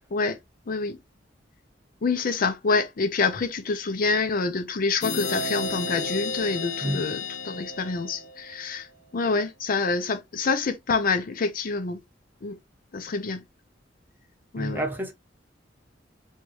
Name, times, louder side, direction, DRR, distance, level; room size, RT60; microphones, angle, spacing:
voice 1, 0.7-1.0 2.0-8.9 9.1-12.0 12.4-12.6 12.9-13.4 14.5-14.8, left 4 dB, 50° left, 0.5 m, -27 dB
sound 1, 5.0-8.6, left 3 dB, 85° left, 0.8 m, -32 dB
voice 2, 14.6-15.1, right 1 dB, 10° right, 0.9 m, -29 dB
4.4 x 2.3 x 3.0 m
head